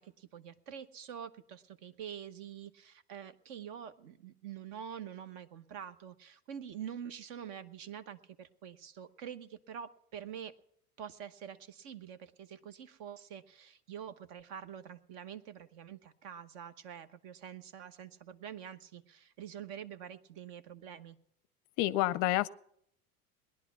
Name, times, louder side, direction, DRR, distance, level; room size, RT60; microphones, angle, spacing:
voice 1, 0.0-10.5 11.0-21.2, right 8 dB, 55° right, 13 dB, 1.0 m, -46 dB
voice 2, 21.8-22.5, left 16 dB, 45° left, 18 dB, 0.5 m, -28 dB
19.0 x 10.5 x 5.9 m, 0.70 s
hypercardioid pair, 85°, 45 cm